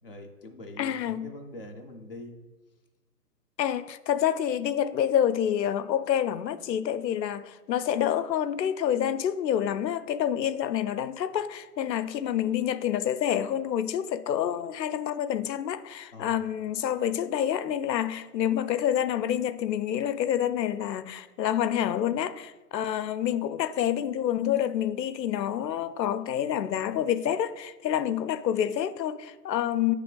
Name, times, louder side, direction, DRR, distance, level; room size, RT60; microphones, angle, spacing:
voice 1, 0.0-2.3 16.1-16.5, left 1 dB, 35° left, 0.5 m, -43 dB
voice 2, 0.8-1.2 3.6-29.9, left 10 dB, 90° left, 0.6 m, -28 dB
8.3 x 3.2 x 3.7 m
hypercardioid pair, 170°, 49 cm